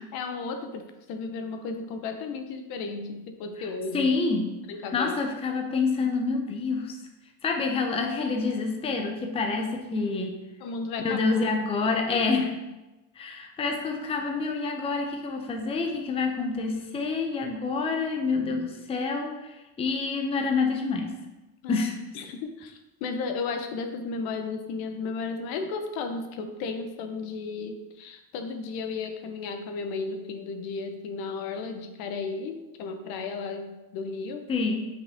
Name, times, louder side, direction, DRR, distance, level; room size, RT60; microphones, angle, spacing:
voice 1, 0.1-4.1 4.7-5.1 10.6-11.4 12.1-12.2 21.6-21.9 22.1-34.5, left 4 dB, 70° left, 6 dB, 1.1 m, -34 dB
voice 2, 3.9-4.6 4.9-6.9 7.4-10.4 11.0-12.5 13.2-21.1 21.7-21.9 34.5-34.8, left 4 dB, 15° left, 3 dB, 0.6 m, -27 dB
8.3 x 5.5 x 3.5 m, 1.1 s
cardioid pair, 160°, 38 cm